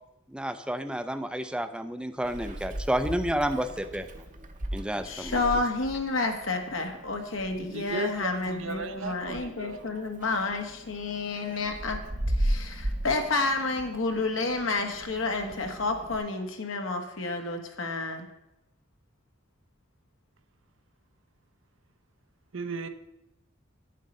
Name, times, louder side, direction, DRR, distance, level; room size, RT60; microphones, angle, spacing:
voice 1, 0.3-4.1 4.7-5.4, right 1 dB, 5° right, 10 dB, 0.5 m, -30 dB
Meow, 2.2-16.2, right 1 dB, 40° right, 0.8 m, -37 dB
voice 2, 5.0-12.0 12.3-18.3, left 3 dB, 75° left, 4 dB, 1.4 m, -30 dB
voice 3, 7.6-10.1 22.5-22.9, right 4 dB, 75° right, 9 dB, 0.8 m, -36 dB
9.9 x 7.4 x 5.3 m, 0.90 s
head